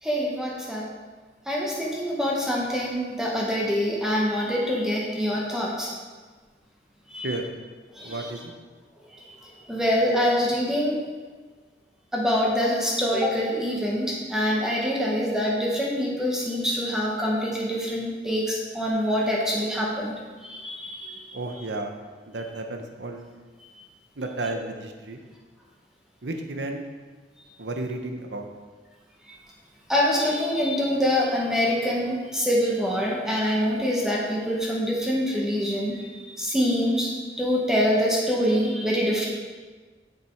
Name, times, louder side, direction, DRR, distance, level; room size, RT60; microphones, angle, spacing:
voice 1, 0.0-0.9 1.5-5.9 7.1-7.4 7.9-8.3 9.2-9.4 9.7-11.0 12.1-20.1 20.4-21.3 29.9-37.1 37.4-39.3, equal, 5° right, -3 dB, 1.0 m, -25 dB
voice 2, 7.1-7.5 8.0-8.5 21.3-21.9 22.3-23.3 24.2-25.2 26.2-26.8 27.6-28.5, right 2 dB, 80° right, 4 dB, 0.9 m, -32 dB
7.6 x 6.7 x 4.5 m, 1.4 s
head